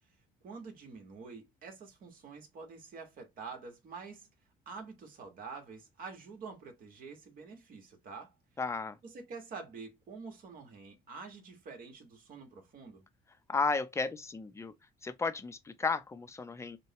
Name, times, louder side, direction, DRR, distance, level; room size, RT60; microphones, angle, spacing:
voice 1, 0.4-4.3 4.6-8.3 9.0-13.0, right 4 dB, 55° right, 1.6 m, -47 dB
voice 2, 8.6-9.0 13.5-14.7 15.0-16.8, left 4 dB, 15° left, 0.6 m, -33 dB
6.3 x 2.3 x 2.9 m
cardioid pair, 110°, 17 cm